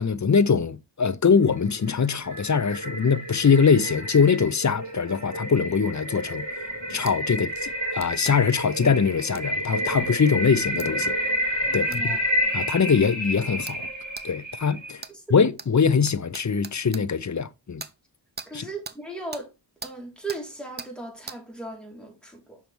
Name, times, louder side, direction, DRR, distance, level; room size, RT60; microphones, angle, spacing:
voice 1, 0.0-6.4 6.9-11.1 11.7-12.2 12.5-13.9 14.2-15.0 15.3-17.8 18.5-18.7, left 5 dB, 40° left, 0.5 m, -22 dB
sound 1, 1.6-15.0, equal, 70° right, 3.8 m, -30 dB
sound 2, 7.1-7.2 8.0-8.4 9.3-9.5 10.8-10.9 11.9-12.0 12.7-12.8 13.7-13.8 14.2-14.3 15.0-15.1 15.6-15.7 16.1-17.0 17.8-17.9 18.4-18.5 18.8-19.0 19.3-19.5 19.8-19.9 20.3-20.4 20.8-20.9 21.3-21.4, right 4 dB, 20° right, 0.5 m, -39 dB
voice 2, 11.7-12.2 15.1-15.2 18.5-19.5 19.8-22.6, right 2 dB, ahead, 3.0 m, -37 dB
7.0 x 5.7 x 3.1 m
wide cardioid pair, 40°, 48 cm